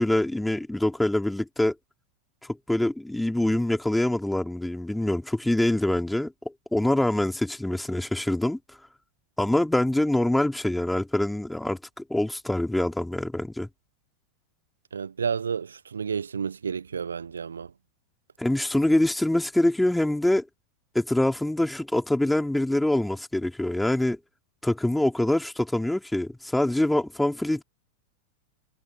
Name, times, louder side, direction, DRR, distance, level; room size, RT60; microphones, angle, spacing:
voice 1, 0.0-1.7 2.7-6.3 6.7-8.6 9.4-13.7 18.4-20.5 20.9-24.2 24.6-27.6, left 1 dB, 5° left, 3.5 m, -24 dB
voice 2, 14.9-17.7, right 6 dB, 70° right, 1.0 m, -31 dB
figure-of-eight pair, 90°, 0 cm